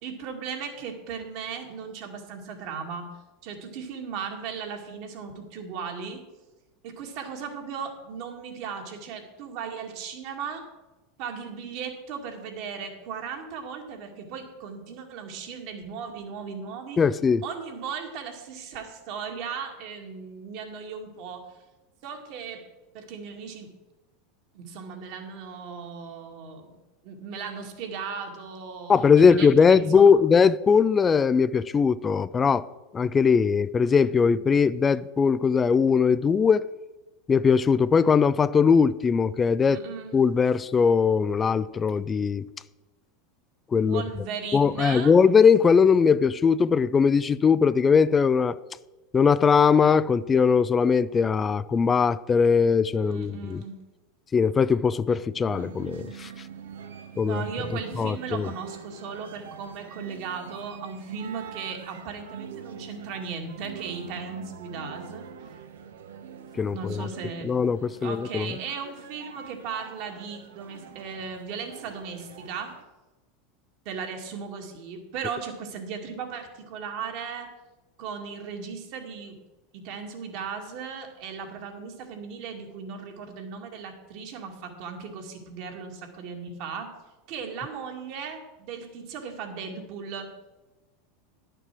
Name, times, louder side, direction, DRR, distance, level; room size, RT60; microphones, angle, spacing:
voice 1, 0.0-3.1 3.4-6.2 6.8-10.7 11.2-17.0 17.4-21.5 22.0-22.6 22.9-23.7 24.5-26.8 27.0-30.2 39.7-40.2 43.9-45.1 53.0-53.8 57.2-65.6 66.7-67.5 68.0-72.7 73.9-77.5 78.0-79.4 79.7-86.9 87.3-90.3, right 6 dB, 55° right, 2.2 m, -37 dB
voice 2, 17.0-17.4 28.9-32.7 32.9-36.6 37.3-39.8 40.1-42.5 43.7-44.0 44.5-48.6 49.1-53.6 54.3-56.3 57.2-57.4 58.0-58.5 66.5-67.1 67.4-68.6, left 6 dB, 25° left, 0.4 m, -20 dB
sound 1, 55.5-72.8, right 7 dB, 75° right, 0.9 m, -44 dB
11.0 x 6.8 x 6.1 m
hypercardioid pair, 85°, 0 cm